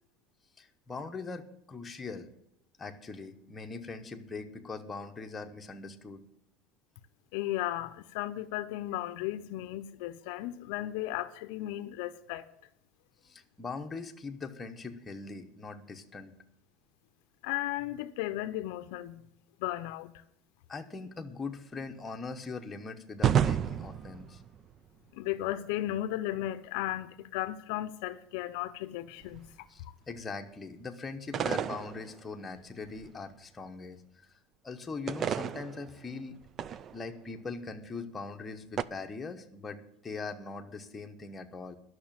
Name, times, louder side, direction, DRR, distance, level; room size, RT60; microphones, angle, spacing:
voice 1, 0.6-2.3 2.8-6.2 13.2-16.3 20.7-24.4 29.7-34.4 34.6-36.4 36.9-41.8, left 4 dB, 15° left, 1.0 m, -41 dB
voice 2, 7.3-12.4 17.4-19.2 19.6-20.1 25.1-29.7, left 14 dB, 65° left, 0.6 m, -35 dB
sound 1, 23.2-24.9 29.2-29.6 31.3-32.6 32.8-33.1 35.1-37.1 38.8-38.9, right 9 dB, 30° right, 0.4 m, -31 dB
11.5 x 6.6 x 8.9 m
supercardioid pair, 160°, 0 cm